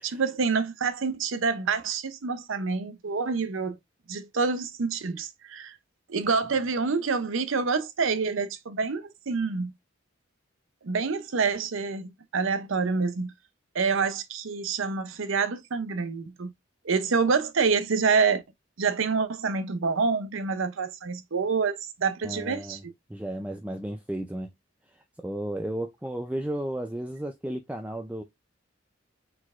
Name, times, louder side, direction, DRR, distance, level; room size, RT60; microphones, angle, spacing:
voice 1, 0.0-3.8 4.1-5.8 6.1-9.7 10.8-13.3 13.7-16.5 16.8-18.4 18.8-22.9, right 5 dB, 65° right, 0.6 m, -27 dB
voice 2, 22.2-22.8 23.1-24.5 24.9-28.2, right 1 dB, 5° right, 0.3 m, -33 dB
4.4 x 4.1 x 2.4 m
head